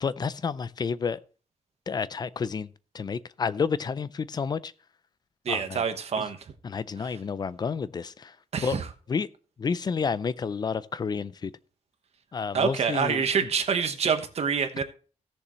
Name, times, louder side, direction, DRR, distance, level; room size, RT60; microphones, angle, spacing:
voice 1, 0.0-1.2 1.9-4.7 5.5-5.8 6.2-6.3 6.6-8.4 8.6-8.8 9.1-9.3 9.6-11.5 12.3-13.2, left 5 dB, 35° left, 0.4 m, -30 dB
voice 2, 5.4-6.4 7.0-7.1 8.5-8.9 12.5-14.8, right 6 dB, 60° right, 1.2 m, -26 dB
16.5 x 6.8 x 3.1 m
wide cardioid pair, 175°, 13 cm